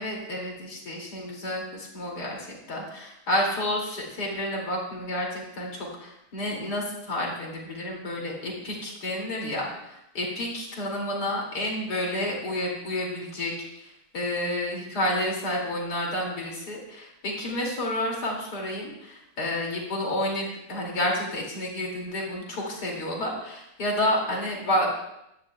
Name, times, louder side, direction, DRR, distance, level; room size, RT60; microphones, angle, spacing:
voice 1, 0.0-24.9, left 1 dB, 65° left, -1 dB, 3.1 m, -30 dB
15.5 x 10.5 x 2.3 m, 0.83 s
omnidirectional pair, 1.9 m